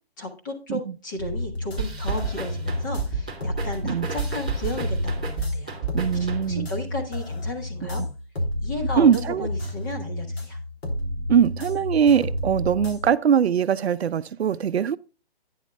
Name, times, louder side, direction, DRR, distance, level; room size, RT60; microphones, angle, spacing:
voice 1, 0.2-5.8 6.1-8.0 8.6-10.6, left 1 dB, 20° left, 1.4 m, -34 dB
sound 1, 1.2-13.1, left 1 dB, 80° left, 3.3 m, -31 dB
sound 2, 1.8-6.7, right 4 dB, 10° right, 0.5 m, -32 dB
voice 2, 5.9-6.7 7.8-7.9 9.0-9.5 11.3-15.0, right 8 dB, 90° right, 0.7 m, -21 dB
11.5 x 9.4 x 2.3 m
hypercardioid pair, 175°, 31 cm